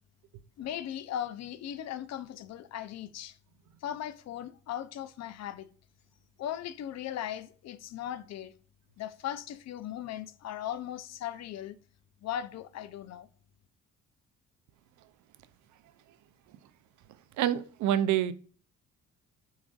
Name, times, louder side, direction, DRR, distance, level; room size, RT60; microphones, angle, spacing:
voice 1, 0.6-3.3 3.8-5.7 6.4-8.5 9.0-11.8 12.2-13.3, left 11 dB, 60° left, 0.5 m, -38 dB
voice 2, 17.4-18.3, right 11 dB, 75° right, 0.5 m, -26 dB
7.0 x 2.5 x 2.4 m
cardioid pair, 90°, 30 cm